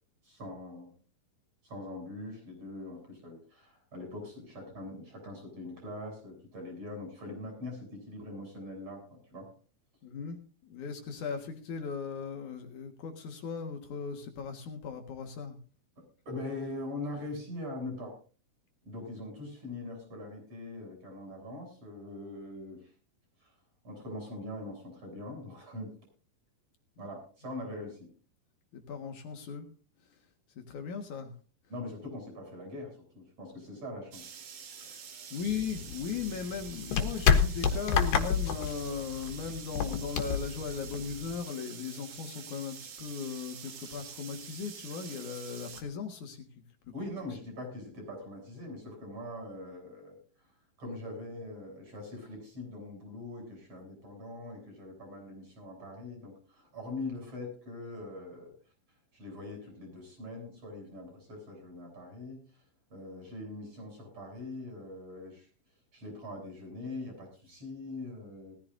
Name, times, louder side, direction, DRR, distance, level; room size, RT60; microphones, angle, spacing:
voice 1, 0.2-0.9 1.6-9.5 16.0-18.2 18.9-22.9 23.4-23.5 23.8-25.9 27.0-28.1 31.7-34.3 35.5-35.6 46.9-50.2 50.8-58.5 59.1-62.4 62.9-65.5 65.9-68.5, left 2 dB, 45° right, 2 dB, 8.7 m, -42 dB
voice 2, 10.0-15.6 28.7-29.7 30.0-30.2 30.7-31.3 34.8-35.0 35.3-46.5 46.8-46.9, left 6 dB, 65° left, 4 dB, 2.8 m, -38 dB
sound 1, 34.1-45.8, right 7 dB, 65° right, 3.2 m, -47 dB
sound 2, 35.4-41.4, left 7 dB, 80° left, 3.2 m, -29 dB
19.5 x 15.0 x 2.6 m, 0.37 s
omnidirectional pair, 4.0 m